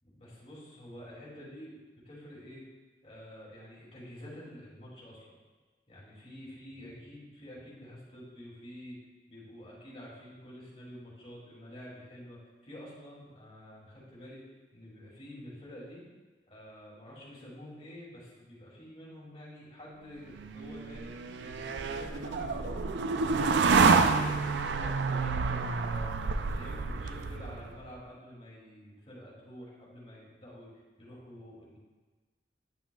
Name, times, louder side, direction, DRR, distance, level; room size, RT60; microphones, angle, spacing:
voice 1, 0.0-1.8 2.1-2.7 3.0-5.3 5.9-9.0 9.3-14.4 14.7-16.0 16.5-22.9 23.4-26.1 26.5-31.8, equal, 35° left, -6 dB, 2.4 m, -48 dB
sound 1, 20.4-27.8, right 4 dB, 90° right, 0.4 m, -28 dB
9.0 x 7.7 x 2.3 m, 1.3 s
head